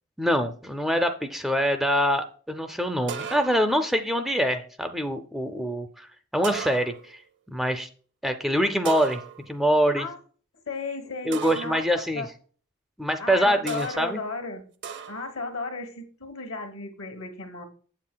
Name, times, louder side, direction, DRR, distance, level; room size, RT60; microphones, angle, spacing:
voice 1, 0.2-7.2 7.5-7.9 8.2-10.1 11.3-12.3 13.0-14.2, equal, ahead, 7 dB, 0.4 m, -25 dB
sound 1, 3.1-3.8 6.4-7.2 8.8-9.6 11.3-11.9 13.7-14.2 14.8-15.4, right 7 dB, 55° right, 0.6 m, -36 dB
voice 2, 10.7-12.3 13.2-14.6 15.1-17.6, left 3 dB, 70° left, 5 dB, 1.2 m, -34 dB
8.1 x 7.4 x 2.2 m, 0.43 s
head